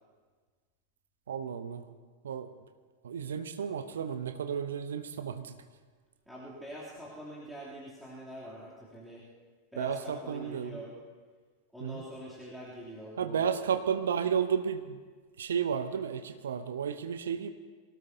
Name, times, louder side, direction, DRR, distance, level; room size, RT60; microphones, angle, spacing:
voice 1, 1.3-1.8 2.2-2.5 3.0-5.6 9.8-10.8 11.8-12.0 13.2-15.0 15.4-17.5, right 7 dB, 65° right, 11 dB, 0.8 m, -32 dB
voice 2, 6.3-9.3 9.7-11.0 11.7-13.5, equal, ahead, -9 dB, 3.1 m, -44 dB
23.5 x 18.0 x 2.8 m, 1.5 s
figure-of-eight pair, 90°, 0 cm